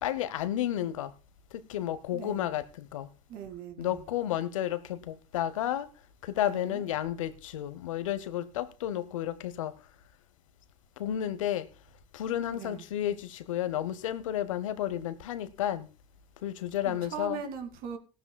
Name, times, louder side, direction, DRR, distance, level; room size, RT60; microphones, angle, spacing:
voice 1, 0.0-1.1 1.5-3.1 3.8-5.9 6.2-9.7 11.0-11.7 12.1-15.9 16.4-17.4, left 11 dB, 85° left, 0.8 m, -32 dB
voice 2, 2.1-2.5 3.3-4.0 6.4-6.9 12.5-12.9 16.9-18.0, right 7 dB, 65° right, 2.1 m, -40 dB
18.0 x 12.5 x 2.2 m
hypercardioid pair, 70°, 16 cm